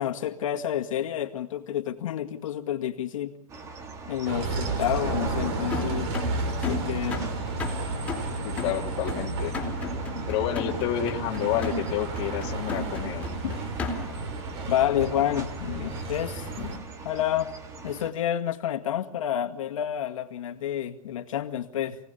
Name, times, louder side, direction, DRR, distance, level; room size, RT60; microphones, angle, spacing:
voice 1, 0.0-3.3 4.1-6.1 6.7-7.2 13.4-13.5 14.7-17.5 17.8-22.0, left 11 dB, 60° left, 3 dB, 2.1 m, -29 dB
sound 1, 3.5-18.1, right 4 dB, 15° right, 1.9 m, -41 dB
Bus, 4.3-16.8, right 3 dB, 45° right, 5.6 m, -32 dB
sound 2, 5.7-14.3, left 3 dB, 5° left, 4.1 m, -35 dB
voice 2, 8.4-9.5 10.3-13.3 16.6-16.7, left 11 dB, 30° left, 1 dB, 2.3 m, -29 dB
29.0 x 18.0 x 7.1 m, 0.71 s
hypercardioid pair, 155°, 19 cm